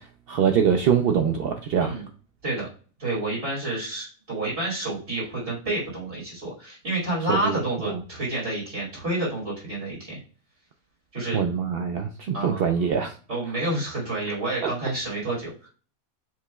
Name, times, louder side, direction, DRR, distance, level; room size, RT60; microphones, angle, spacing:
voice 1, 0.0-1.9 7.3-7.6 7.8-7.9 11.3-13.1, right 7 dB, 80° right, 4 dB, 0.5 m, -23 dB
voice 2, 3.0-10.2 11.1-11.5 12.3-12.7 13.3-15.7, right 2 dB, 50° right, -6 dB, 2.7 m, -29 dB
7.4 x 2.9 x 2.2 m, 0.39 s
omnidirectional pair, 1.5 m